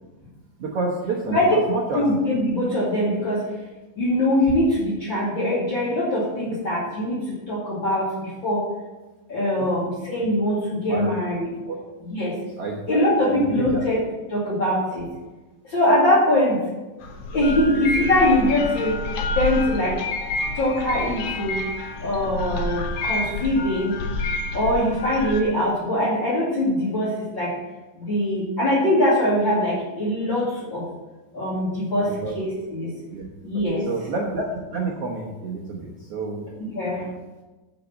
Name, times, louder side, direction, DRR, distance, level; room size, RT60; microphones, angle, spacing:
voice 1, 0.6-2.0 9.6-9.7 10.9-11.2 11.6-11.8 12.6-13.8 32.0-32.3 33.1-33.2 33.9-34.4 34.7-36.5, right 3 dB, 60° right, -3 dB, 1.7 m, -29 dB
voice 2, 1.9-3.5 4.0-8.7 9.3-11.6 12.0-12.4 12.9-14.0 14.3-15.1 15.6-16.6 17.3-19.1 19.3-20.0 20.5-21.6 22.0-24.0 24.5-27.6 28.0-30.9 31.3-32.9 33.4-33.9 36.7-37.1, left 1 dB, 35° left, -7 dB, 2.7 m, -22 dB
sound 1, 17.0-25.4, left 2 dB, 70° left, 1.4 m, -28 dB
10.5 x 5.3 x 7.1 m, 1.1 s
omnidirectional pair, 4.0 m